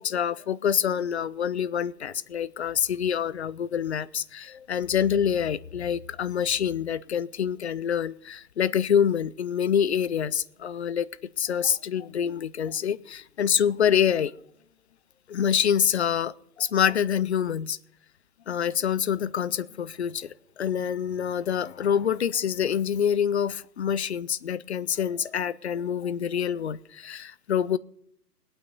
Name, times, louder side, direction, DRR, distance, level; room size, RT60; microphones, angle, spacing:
voice 1, 0.0-11.1 11.4-14.3 15.3-17.8 18.5-27.8, left 8 dB, 45° left, 20 dB, 0.4 m, -26 dB
20.0 x 8.8 x 5.3 m, 0.68 s
hypercardioid pair, 150°, 49 cm